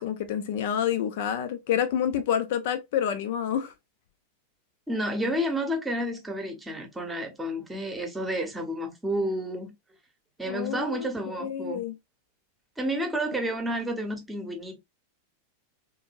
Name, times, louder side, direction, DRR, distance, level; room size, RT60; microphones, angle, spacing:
voice 1, 0.0-3.7 10.5-11.1 11.4-11.9, left 9 dB, 50° left, 0.5 m, -28 dB
voice 2, 4.9-9.7 10.4-11.8 12.8-14.8, right 1 dB, 10° right, 0.9 m, -30 dB
3.6 x 2.6 x 2.5 m
figure-of-eight pair, 90°, 0 cm